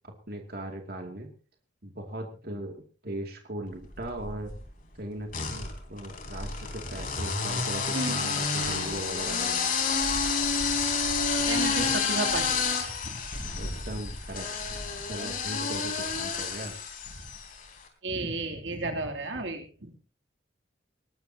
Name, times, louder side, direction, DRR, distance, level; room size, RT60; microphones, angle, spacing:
voice 1, 0.0-1.3 1.8-4.5 4.9-9.7 13.6-14.5 15.0-16.8, right 1 dB, 55° right, 3 dB, 2.5 m, -38 dB
sound 1, 3.9-4.6 5.3-17.6, left 5 dB, 45° left, 3.9 m, -30 dB
voice 2, 7.9-8.4 11.4-12.6 13.0-13.2 18.0-20.0, right 2 dB, 75° right, 3 dB, 3.0 m, -33 dB
20.0 x 20.0 x 2.9 m, 0.37 s
head